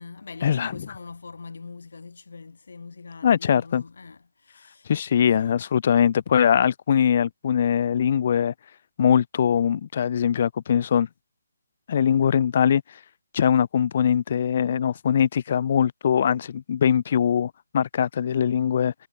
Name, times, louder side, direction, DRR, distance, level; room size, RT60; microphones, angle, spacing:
voice 1, 0.0-4.9 5.3-5.6, left 4 dB, 70° left, 1.5 m, -42 dB
voice 2, 3.2-3.8 4.9-8.5 9.0-11.1 11.9-12.8 13.3-18.9, left 8 dB, 45° left, 0.5 m, -22 dB
figure-of-eight pair, 155°, 0 cm